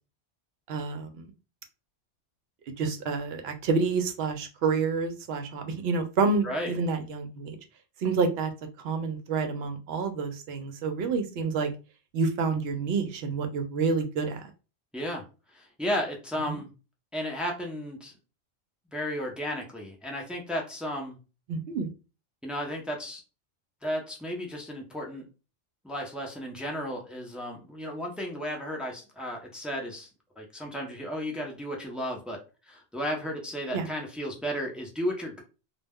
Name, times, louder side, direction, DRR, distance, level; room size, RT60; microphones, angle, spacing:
voice 1, 0.7-1.3 2.8-7.6 8.0-8.5 8.8-11.7 12.1-14.4 16.5-16.6 21.5-21.9 33.7-33.9, right 4 dB, 65° right, 6 dB, 0.8 m, -28 dB
voice 2, 6.4-6.8 14.9-15.2 15.5-16.7 17.1-18.1 18.9-21.2 22.4-23.2 23.8-25.2 25.8-30.1 30.4-35.4, equal, ahead, 0 dB, 0.3 m, -34 dB
2.2 x 2.0 x 3.4 m, 0.32 s
omnidirectional pair, 1.2 m